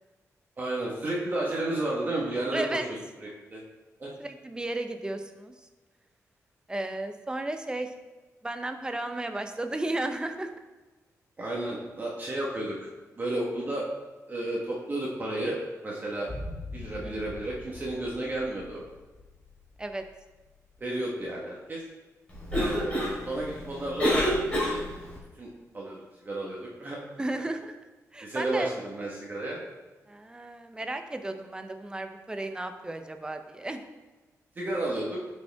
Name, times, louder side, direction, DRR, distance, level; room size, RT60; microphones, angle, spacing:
voice 1, 0.6-2.9 3.2-3.6 4.0-4.1 11.4-12.9 13.2-13.9 14.3-16.3 16.7-18.8 20.8-21.8 22.5-24.2 24.5-24.8 25.3-25.5 25.7-27.0 28.2-29.6 34.5-35.2, right 1 dB, 35° right, -4 dB, 1.4 m, -32 dB
voice 2, 2.5-2.9 4.2-5.5 6.7-7.9 8.4-10.5 17.0-17.2 19.8-20.0 27.2-27.8 28.1-28.7 30.1-33.8, right 2 dB, 15° right, 7 dB, 0.7 m, -34 dB
sound 1, 16.3-20.5 20.8-20.9, left 2 dB, 40° left, 2.7 m, -43 dB
Cough, 22.3-25.2, equal, 20° left, 2.9 m, -28 dB
11.0 x 5.5 x 3.5 m, 1.2 s
wide cardioid pair, 120°, 6 cm